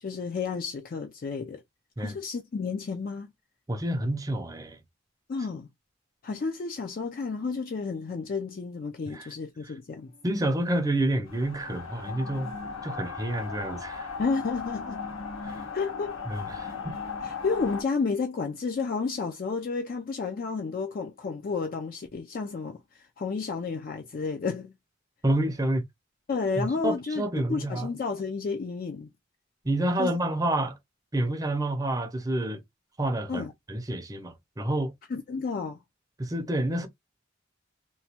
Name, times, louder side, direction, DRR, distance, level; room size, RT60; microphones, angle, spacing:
voice 1, 0.0-1.6 2.0-3.3 5.3-5.7 6.2-10.1 14.2-15.1 15.7-16.2 17.2-24.7 26.3-29.1 30.0-30.1 33.3-33.5 35.1-35.8, left 4 dB, 45° left, 0.4 m, -31 dB
voice 2, 3.7-4.8 9.1-9.3 10.2-12.5 12.8-14.1 15.5-15.6 16.3-17.0 25.2-25.8 26.6-27.9 29.6-30.8 31.1-32.6 33.0-34.9 36.2-36.9, right 1 dB, 15° right, 0.5 m, -28 dB
sound 1, 11.2-17.8, left 5 dB, 90° left, 1.4 m, -37 dB
3.0 x 2.2 x 2.8 m
head